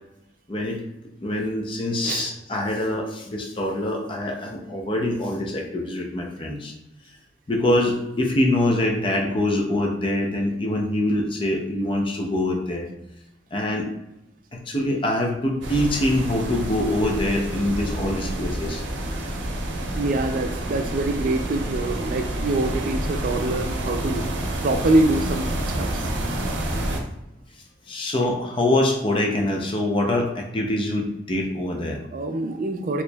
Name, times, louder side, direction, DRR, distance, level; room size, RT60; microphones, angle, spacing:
voice 1, 0.5-0.8 1.2-6.7 7.5-12.9 13.5-13.9 14.5-18.8 20.8-20.9 27.9-32.0, left 1 dB, 30° left, 2 dB, 0.5 m, -24 dB
sound 1, 15.6-27.0, right 1 dB, 90° right, 0.6 m, -28 dB
voice 2, 19.9-24.3 24.6-26.0 32.1-33.0, right 2 dB, 50° right, 6 dB, 0.3 m, -24 dB
4.2 x 2.9 x 2.2 m, 0.91 s
head